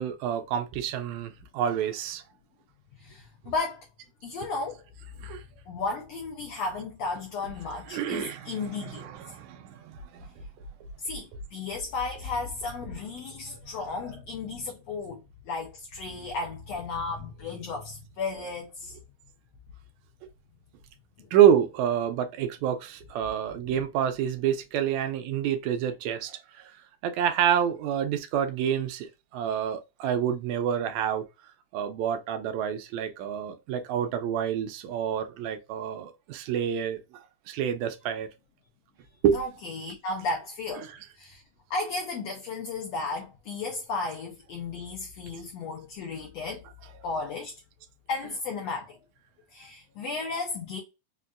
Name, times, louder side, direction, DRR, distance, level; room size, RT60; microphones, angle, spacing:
voice 1, 0.0-2.2 5.2-5.4 7.9-10.3 21.3-26.4 27.0-31.3 31.7-37.0 37.5-38.3 39.2-39.4 40.8-40.9, right 9 dB, 75° right, 1.8 m, -27 dB
voice 2, 3.0-3.9 4.2-4.8 5.7-9.1 11.0-15.2 15.5-18.9 21.2-21.3 39.3-40.9 41.2-41.4 41.7-46.6 47.0-47.5 48.1-49.0 49.5-50.8, left 3 dB, 75° left, 1.6 m, -34 dB
5.2 x 2.5 x 2.4 m
omnidirectional pair, 3.7 m